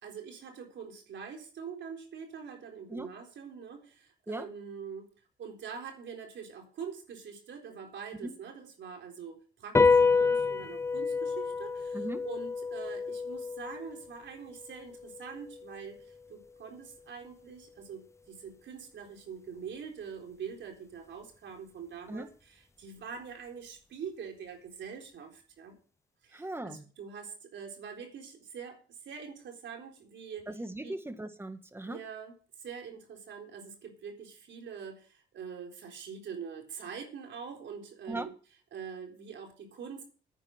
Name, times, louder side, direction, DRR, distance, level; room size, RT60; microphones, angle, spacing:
voice 1, 0.0-5.0 5.4-25.8 26.2-30.5 30.8-31.0 31.9-32.3 32.6-38.3 38.7-40.0, right 6 dB, 65° right, 2 dB, 3.9 m, -44 dB
sound 1, 9.7-16.5, left 4 dB, 15° left, 0.5 m, -29 dB
voice 2, 26.3-26.8 30.5-32.0 38.1-38.3, right 1 dB, 10° right, 9 dB, 1.8 m, -38 dB
9.8 x 9.6 x 6.5 m, 0.39 s
cardioid pair, 90°, 20 cm